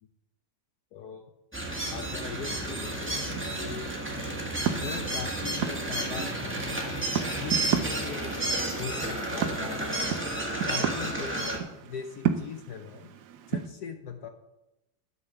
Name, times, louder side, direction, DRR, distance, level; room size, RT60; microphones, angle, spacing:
voice 1, 0.9-1.3 1.9-3.2 3.6-4.0 4.8-6.6 7.3-8.3 8.8-9.8 10.7-13.1 13.5-14.3, left 6 dB, 65° left, 6 dB, 1.2 m, -40 dB
sound 1, 1.5-11.6, right 1 dB, 5° right, 1.3 m, -31 dB
sound 2, 2.5-13.7, right 8 dB, 70° right, 1.2 m, -35 dB
11.0 x 5.5 x 6.8 m, 0.95 s
omnidirectional pair, 2.0 m